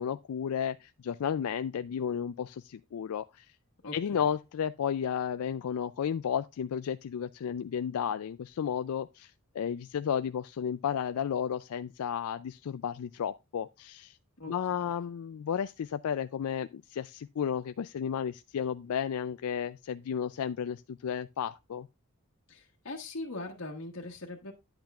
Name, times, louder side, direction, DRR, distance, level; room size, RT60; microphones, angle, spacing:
voice 1, 0.0-3.4 3.9-14.2 14.5-21.9, left 8 dB, 80° left, 0.4 m, -33 dB
voice 2, 3.8-4.3 14.4-14.5 14.8-14.9 22.5-24.5, left 2 dB, 65° left, 1.3 m, -41 dB
10.5 x 8.0 x 2.4 m
head